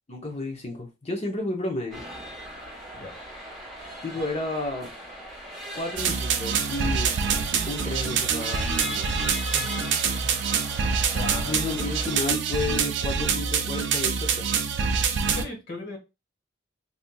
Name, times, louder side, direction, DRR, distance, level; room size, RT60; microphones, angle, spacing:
voice 1, 0.1-2.0 4.0-4.9 5.7-7.1 7.7-9.1 11.5-14.5, left 2 dB, 30° left, 0.7 m, -32 dB
sound 1, 1.9-12.3, left 1 dB, ahead, 0.9 m, -39 dB
sound 2, 6.0-15.4, right 6 dB, 60° right, 0.4 m, -26 dB
voice 2, 9.5-10.5 11.1-11.6 15.2-16.0, left 3 dB, 50° left, 1.0 m, -38 dB
3.4 x 2.7 x 2.2 m
head